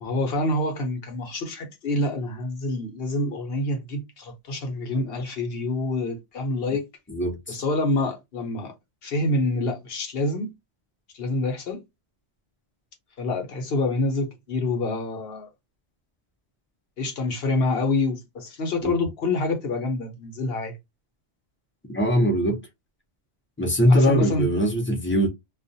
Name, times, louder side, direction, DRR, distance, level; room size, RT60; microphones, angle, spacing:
voice 1, 0.0-6.9 7.5-8.7 9.0-10.5 11.1-11.8 13.2-15.5 17.0-20.7 23.9-24.5, left 2 dB, 65° left, 0.9 m, -27 dB
voice 2, 7.1-7.6 18.8-18.9 21.9-22.6 23.6-25.3, equal, 15° left, 0.6 m, -21 dB
2.3 x 2.3 x 2.6 m
omnidirectional pair, 1.1 m